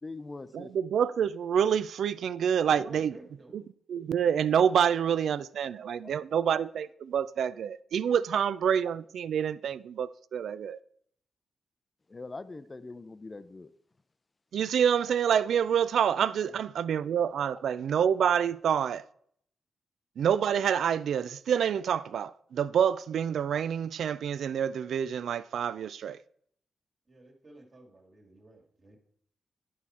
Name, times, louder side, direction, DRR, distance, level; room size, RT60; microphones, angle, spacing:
voice 1, 0.0-0.7 12.1-13.7, left 3 dB, 25° left, 0.5 m, -42 dB
voice 2, 0.5-3.1 3.5-3.6 3.9-10.8 14.5-19.0 20.2-26.2, right 8 dB, 75° right, 0.3 m, -27 dB
voice 3, 2.7-3.5 16.5-16.6 27.1-29.0, right 2 dB, 40° right, 2.0 m, -50 dB
11.0 x 4.6 x 4.2 m
cardioid pair, 105°, 0 cm